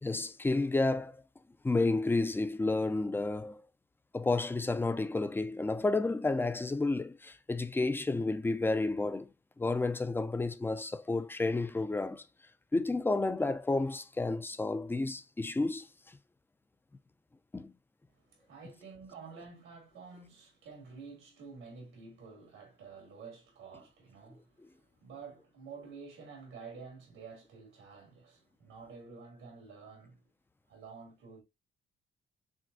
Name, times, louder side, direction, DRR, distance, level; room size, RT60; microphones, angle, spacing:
voice 1, 0.0-1.1 1.6-3.6 4.1-9.3 9.6-12.2 12.7-15.9 17.5-17.7, left 2 dB, 10° left, 0.5 m, -31 dB
voice 2, 18.2-30.3 30.7-31.4, right 5 dB, 90° right, 2.8 m, -50 dB
6.1 x 2.3 x 2.6 m
cardioid pair, 90°, 20 cm